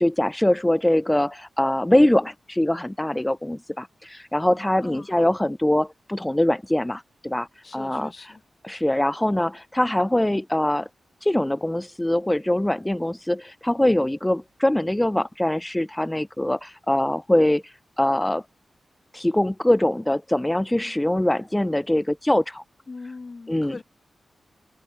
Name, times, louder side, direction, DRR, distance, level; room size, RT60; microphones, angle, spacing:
voice 1, 0.0-8.3 8.6-10.9 11.2-18.4 19.1-22.6 23.5-23.8, left 1 dB, 10° left, 0.4 m, -23 dB
voice 2, 4.8-5.3 7.6-8.4 22.9-23.8, left 3 dB, 45° left, 1.5 m, -40 dB
cardioid pair, 70°, 0 cm